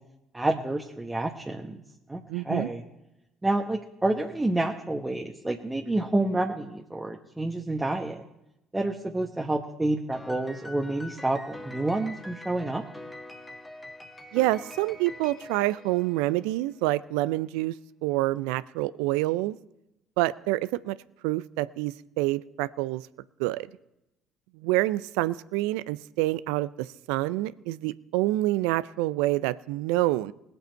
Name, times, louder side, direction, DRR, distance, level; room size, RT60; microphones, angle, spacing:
voice 1, 0.3-1.8 2.1-2.8 3.4-8.2 8.7-12.8, right 2 dB, 15° right, 2 dB, 1.2 m, -29 dB
voice 2, 2.3-2.7 14.3-17.7 18.0-19.6 20.2-21.0 21.2-23.1 23.4-23.7 24.5-30.3, right 17 dB, 75° right, 18 dB, 0.4 m, -27 dB
Piano, 10.1-16.6, left 1 dB, 15° left, 1.7 m, -44 dB
20.5 x 8.0 x 4.6 m, 0.88 s
hypercardioid pair, 55°, 0 cm